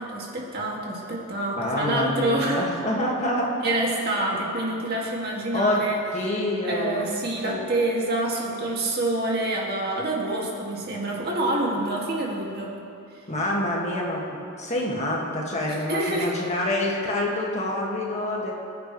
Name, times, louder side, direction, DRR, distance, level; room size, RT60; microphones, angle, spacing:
voice 1, 0.0-2.6 3.6-6.0 6.6-12.7 15.7-16.3, right 1 dB, 45° right, -3 dB, 2.2 m, -27 dB
voice 2, 1.6-3.8 4.3-4.4 5.5-7.1 7.4-7.6 13.3-14.3 14.6-18.5, left 1 dB, 30° left, -2 dB, 1.9 m, -26 dB
24.5 x 10.5 x 3.2 m, 2.7 s
head